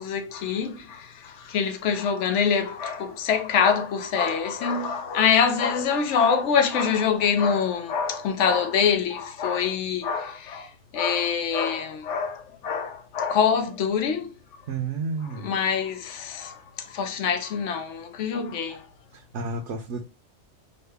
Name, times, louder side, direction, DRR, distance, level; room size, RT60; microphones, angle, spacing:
voice 1, 0.0-14.6 15.3-18.9, left 6 dB, 90° left, 0.9 m, -25 dB
voice 2, 14.7-15.5 19.1-20.0, right 4 dB, 70° right, 0.9 m, -31 dB
5.3 x 2.2 x 3.3 m
omnidirectional pair, 1.2 m